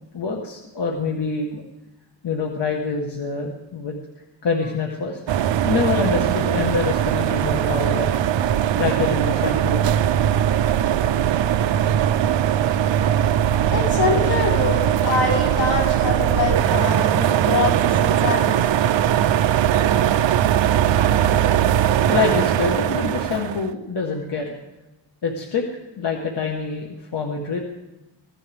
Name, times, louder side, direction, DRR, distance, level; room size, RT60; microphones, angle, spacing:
voice 1, 0.1-1.6 2.2-4.0 4.4-5.2 5.6-8.1 8.8-9.8 22.1-24.5 25.2-25.7 26.0-27.6, left 4 dB, 65° left, 0 dB, 1.7 m, -25 dB
sound 1, 5.3-23.7, right 10 dB, 80° right, 0.7 m, -20 dB
voice 2, 13.7-18.5, left 4 dB, 85° left, -5 dB, 5.0 m, -24 dB
25.0 x 15.5 x 3.6 m, 1.0 s
wide cardioid pair, 120°, 44 cm